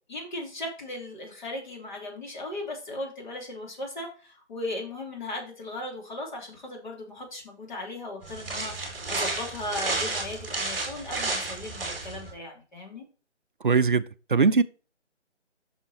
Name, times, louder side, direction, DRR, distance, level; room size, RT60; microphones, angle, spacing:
voice 1, 0.1-13.0, left 1 dB, 40° left, 3.1 m, -37 dB
sound 1, 8.2-12.3, right 3 dB, 5° right, 2.1 m, -32 dB
voice 2, 13.6-14.6, right 4 dB, 45° right, 0.5 m, -21 dB
7.3 x 6.4 x 4.3 m
figure-of-eight pair, 150°, 35 cm